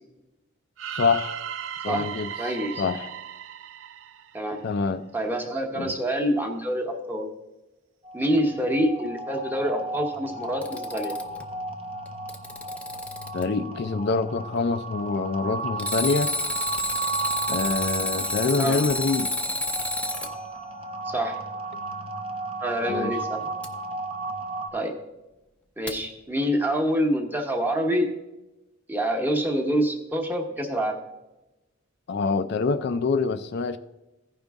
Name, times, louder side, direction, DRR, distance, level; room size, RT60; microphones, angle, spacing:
sound 1, 0.8-4.8, right 9 dB, 65° right, 0.4 m, -36 dB
voice 1, 0.9-1.4 1.8-3.1 4.6-5.1 5.8-5.9 13.3-16.3 17.5-19.3 22.9-23.2 32.1-33.8, left 4 dB, 55° left, 9 dB, 0.4 m, -26 dB
voice 2, 2.4-2.8 4.3-4.6 5.1-7.3 8.1-11.2 18.6-18.8 21.1-21.4 22.6-23.4 24.7-24.9 25.8-28.1 28.9-31.0, equal, 10° right, 2 dB, 1.0 m, -26 dB
sound 2, 8.0-24.7, right 2 dB, 30° right, 0.7 m, -34 dB
Alarm, 10.4-11.4 12.1-13.4 15.8-20.3 23.6-23.7 25.9-26.0, left 1 dB, 5° left, 0.6 m, -29 dB
15.0 x 5.2 x 3.5 m, 1.0 s
head